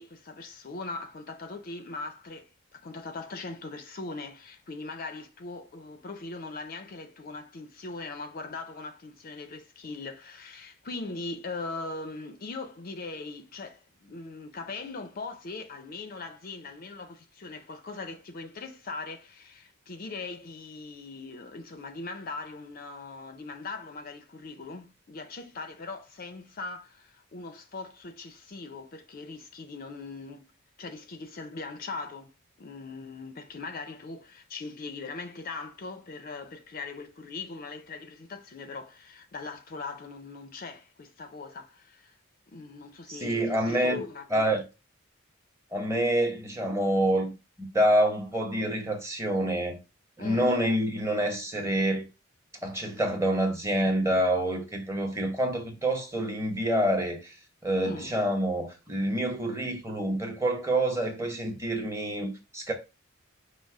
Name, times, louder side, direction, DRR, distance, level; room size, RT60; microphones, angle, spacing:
voice 1, 0.0-30.5 30.8-32.3 32.6-42.2 42.5-44.6 50.2-50.6 57.8-58.1, left 3 dB, 40° left, 0.4 m, -40 dB
voice 2, 43.1-44.0 44.3-44.6 45.7-47.3 47.6-49.8 50.2-52.1 52.6-57.3 57.6-62.7, right 1 dB, 15° right, 0.8 m, -27 dB
5.2 x 2.0 x 4.7 m
head